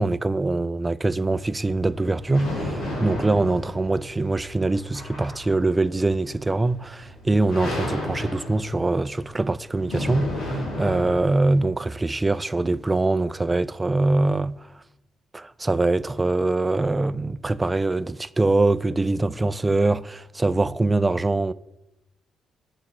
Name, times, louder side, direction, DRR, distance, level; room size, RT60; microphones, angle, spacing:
voice 1, 0.0-14.8 15.3-21.5, right 2 dB, 20° right, 0.3 m, -23 dB
sound 1, 1.2-11.6, left 1 dB, 80° left, 3.0 m, -33 dB
8.6 x 5.6 x 6.1 m
cardioid pair, 90°, 0 cm